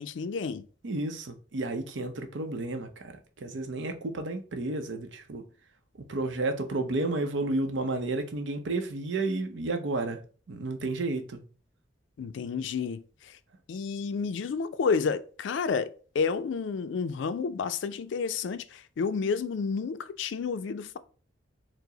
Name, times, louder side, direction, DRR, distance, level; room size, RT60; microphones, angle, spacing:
voice 1, 0.0-0.7 12.2-13.4 13.7-21.0, left 5 dB, 75° left, 0.3 m, -30 dB
voice 2, 0.8-5.5 6.0-10.2 10.5-11.4, right 2 dB, 75° right, 0.6 m, -32 dB
4.6 x 2.0 x 3.8 m
head